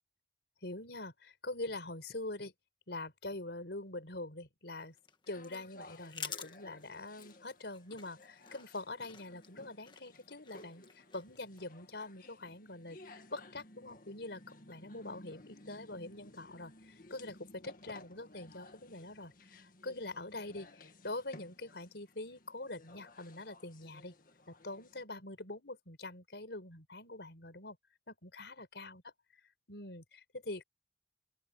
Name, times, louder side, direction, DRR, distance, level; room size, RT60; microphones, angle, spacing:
voice 1, 0.6-2.5 2.9-4.9 5.3-14.4 14.7-24.1 24.5-27.8 28.1-29.0 29.7-30.6, left 2 dB, 75° left, 4.6 m, -44 dB
sound 1, 4.7-11.6, left 6 dB, 25° left, 1.6 m, -50 dB
sound 2, 5.3-25.0, left 2 dB, 50° left, 2.0 m, -57 dB
open air
head